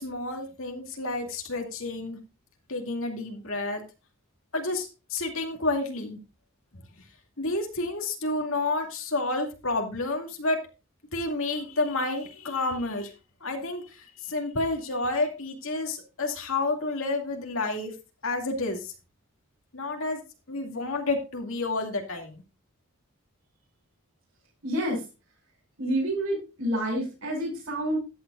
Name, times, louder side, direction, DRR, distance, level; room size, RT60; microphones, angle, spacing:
voice 1, 0.0-2.2 2.7-3.8 4.5-6.2 7.4-10.6 11.1-13.1 13.4-17.9 18.2-18.9 19.7-20.2 20.5-22.4, left 2 dB, 65° left, 3 dB, 2.4 m, -30 dB
voice 2, 24.6-25.1 25.8-28.0, right 1 dB, 60° right, -6 dB, 6.6 m, -28 dB
14.0 x 9.3 x 2.5 m, 0.29 s
head